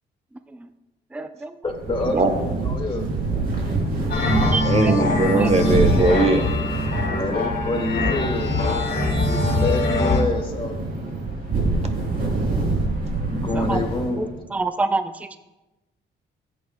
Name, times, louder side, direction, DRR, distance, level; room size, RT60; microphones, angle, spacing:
voice 1, 1.1-1.5 4.4-5.0 5.3-5.5 13.5-13.8 14.2-14.3 14.5-15.4, right 3 dB, 5° right, 10 dB, 0.5 m, -27 dB
voice 2, 1.6-3.1 7.1-10.8 13.3-14.4, left 3 dB, 25° left, 1 dB, 2.0 m, -27 dB
sound 1, 1.7-14.4, right 3 dB, 50° right, 3.4 m, -26 dB
sound 2, 4.1-10.2, left 2 dB, 50° left, 2.0 m, -23 dB
voice 3, 4.6-6.5, right 2 dB, 35° right, 7 dB, 1.2 m, -20 dB
14.5 x 8.3 x 2.3 m, 1.0 s
cardioid pair, 90°, 20 cm